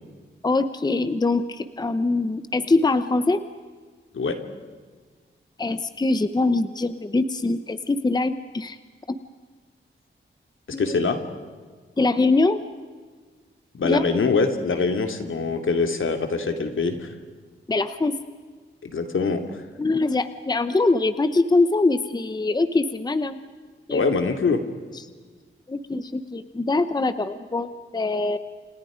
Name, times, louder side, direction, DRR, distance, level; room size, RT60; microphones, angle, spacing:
voice 1, 0.4-3.4 5.6-8.8 9.1-9.2 10.7-11.0 12.0-12.6 13.8-14.0 17.7-18.1 19.8-23.4 23.9-24.0 25.7-28.4, left 3 dB, 20° left, 11 dB, 0.8 m, -23 dB
voice 2, 10.8-11.2 13.7-17.1 18.8-19.6 23.9-24.6, left 4 dB, 70° left, 6 dB, 2.6 m, -24 dB
29.5 x 28.5 x 5.1 m, 1.5 s
wide cardioid pair, 170°, 21 cm